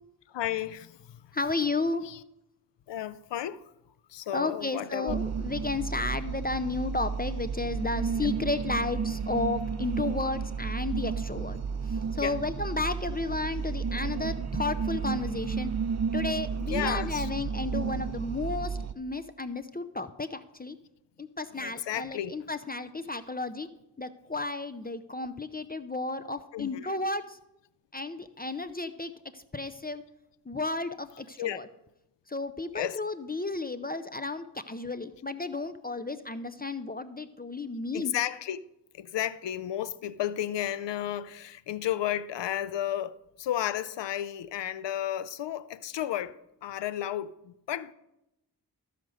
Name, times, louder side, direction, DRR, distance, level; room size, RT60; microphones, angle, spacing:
voice 1, 0.3-1.2 2.0-2.2 2.9-3.6 4.1-5.2 12.2-12.3 16.7-17.3 21.5-22.4 26.5-27.0 31.4-31.6 32.7-33.0 37.9-38.6 38.9-46.4 46.6-47.9, left 11 dB, 80° left, 0.5 m, -33 dB
voice 2, 1.3-2.0 4.3-11.6 11.9-15.7 16.1-20.8 21.2-23.7 24.0-27.4 27.9-30.0 30.5-31.7 32.3-38.2, left 3 dB, 20° left, 0.6 m, -33 dB
sound 1, 5.1-18.9, right 6 dB, 40° right, 0.5 m, -32 dB
13.5 x 5.0 x 6.3 m
cardioid pair, 40°, 42 cm